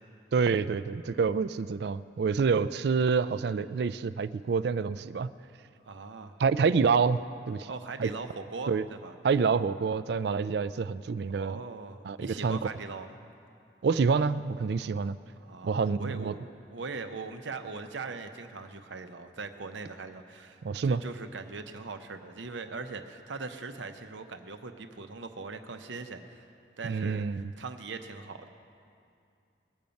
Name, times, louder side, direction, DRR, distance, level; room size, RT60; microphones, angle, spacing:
voice 1, 0.3-5.3 6.4-7.2 7.5-7.7 8.0-8.1 8.7-8.8 9.2-11.6 12.0-12.6 13.8-15.1 15.6-16.3 20.6-21.0 26.8-27.5, right 5 dB, 60° right, 15 dB, 0.3 m, -27 dB
voice 2, 5.8-6.4 7.7-9.1 11.3-13.2 15.4-26.5 26.8-28.5, right 4 dB, 85° right, 8 dB, 0.8 m, -40 dB
20.5 x 7.0 x 5.2 m, 2.4 s
head